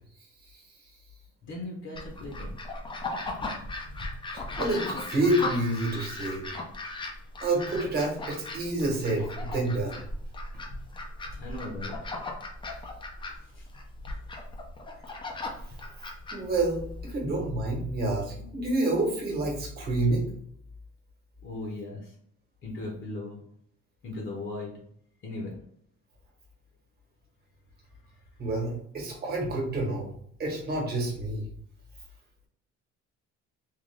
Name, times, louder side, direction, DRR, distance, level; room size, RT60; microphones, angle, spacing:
voice 1, 1.4-2.6 11.3-12.0 13.4-13.7 21.4-22.1 22.6-23.4 24.0-24.8 25.2-25.6, left 2 dB, 40° left, -1 dB, 0.9 m, -38 dB
sound 1, 1.9-17.1, left 2 dB, 15° left, 0.5 m, -37 dB
voice 2, 4.3-6.5 7.4-10.0 16.0-16.1 16.3-20.3 28.4-30.1 30.4-31.4, right 2 dB, 35° right, -1 dB, 1.3 m, -28 dB
3.7 x 3.0 x 3.2 m, 0.68 s
cardioid pair, 165°, 29 cm